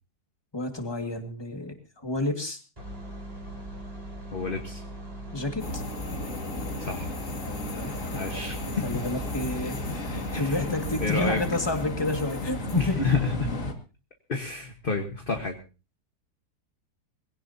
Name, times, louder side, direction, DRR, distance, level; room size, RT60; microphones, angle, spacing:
voice 1, 0.5-2.6 5.3-5.8 7.7-13.0, left 2 dB, 15° left, 5 dB, 2.0 m, -31 dB
sound 1, 2.8-11.5, right 1 dB, 20° right, 4.4 m, -40 dB
voice 2, 4.3-4.9 6.8-7.1 8.1-8.6 10.4-10.6 11.0-11.4 12.7-13.5 14.3-15.5, left 3 dB, 35° left, 4 dB, 1.5 m, -29 dB
sound 2, 5.6-13.7, left 2 dB, 50° left, 2.4 m, -34 dB
22.0 x 17.0 x 2.8 m, 0.32 s
omnidirectional pair, 1.7 m